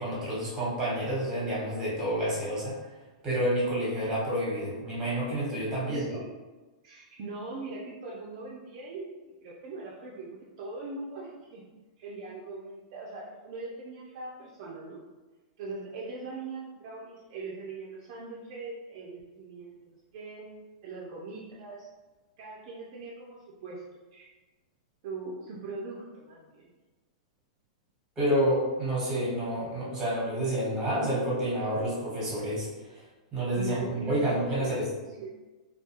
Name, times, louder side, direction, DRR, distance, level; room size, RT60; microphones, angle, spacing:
voice 1, 0.0-2.8 3.2-6.0 28.2-32.7 32.9-33.0 33.3-34.9, right 1 dB, 20° right, -7 dB, 1.2 m, -29 dB
voice 2, 5.7-6.3 6.8-9.1 9.4-11.6 12.0-15.0 15.6-20.5 20.8-21.9 22.4-23.8 24.1-24.3 25.0-26.7 33.5-35.3, right 3 dB, 50° right, -4 dB, 0.5 m, -41 dB
2.3 x 2.2 x 2.8 m, 1.2 s
supercardioid pair, 145°, 4 cm